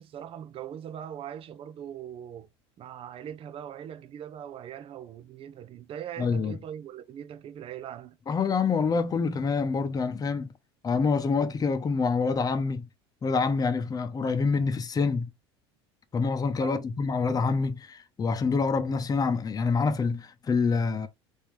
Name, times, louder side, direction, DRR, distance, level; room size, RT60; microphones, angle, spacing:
voice 1, 0.0-2.5 2.8-8.2 16.6-17.0, right 9 dB, 40° right, 0.8 m, -41 dB
voice 2, 6.2-6.6 8.3-10.5 10.8-12.9 13.2-15.3 16.1-21.1, left 4 dB, 25° left, 0.9 m, -26 dB
4.2 x 3.7 x 3.3 m
hypercardioid pair, 75°, 14 cm